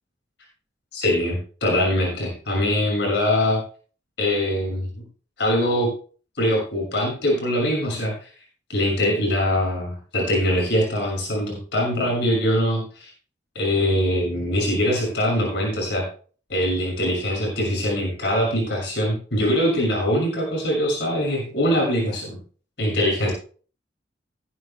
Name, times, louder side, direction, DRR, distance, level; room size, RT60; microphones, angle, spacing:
voice 1, 0.9-3.6 4.2-5.0 5.4-5.9 6.3-8.3 8.7-13.1 13.5-16.0 16.5-22.4 22.8-23.3, equal, 70° left, -2 dB, 6.5 m, -23 dB
19.0 x 11.0 x 2.2 m, 0.40 s
head